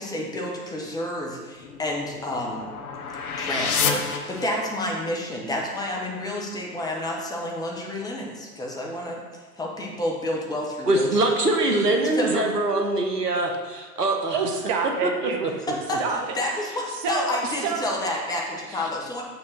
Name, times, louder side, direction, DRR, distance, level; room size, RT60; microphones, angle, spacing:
voice 1, 0.0-2.7 3.4-9.2 9.6-11.3 12.1-12.4 15.7-16.0 16.3-19.2, left 1 dB, 10° left, -2 dB, 0.9 m, -29 dB
sound 1, 1.6-5.0, left 6 dB, 65° left, 0.9 m, -30 dB
voice 2, 10.9-14.4 15.0-15.1, right 2 dB, 85° right, 3 dB, 1.1 m, -23 dB
voice 3, 14.3-15.5 16.0-16.2 16.9-17.3 17.6-17.9, right 5 dB, 20° right, 1 dB, 0.4 m, -27 dB
6.8 x 3.5 x 6.1 m, 1.4 s
figure-of-eight pair, 100°, 46 cm